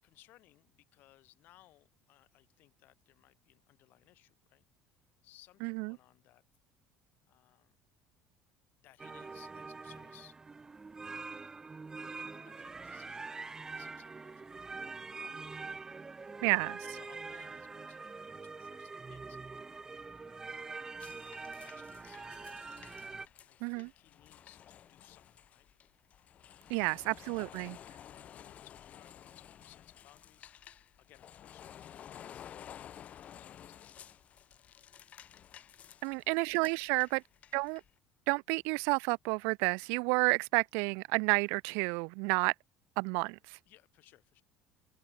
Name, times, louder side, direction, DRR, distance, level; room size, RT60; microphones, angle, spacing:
voice 1, 0.0-4.6 5.2-6.4 7.3-7.8 8.8-10.4 11.2-11.4 12.1-14.6 15.1-15.3 16.3-19.4 20.1-21.0 21.6-25.7 26.7-27.1 28.1-30.5 31.0-33.9 35.9-36.3 36.9-37.0 43.7-44.4, left 16 dB, 60° left, 7.9 m, -63 dB
voice 2, 5.6-6.0 16.4-16.8 23.6-23.9 26.7-27.8 36.0-37.2 37.5-37.8 38.3-42.5 43.0-43.6, right 33 dB, 80° right, 0.3 m, -30 dB
sound 1, 9.0-23.3, right 4 dB, 15° right, 1.1 m, -45 dB
sound 2, 21.0-37.9, left 10 dB, 40° left, 2.8 m, -53 dB
cardioid pair, 135°, 4 cm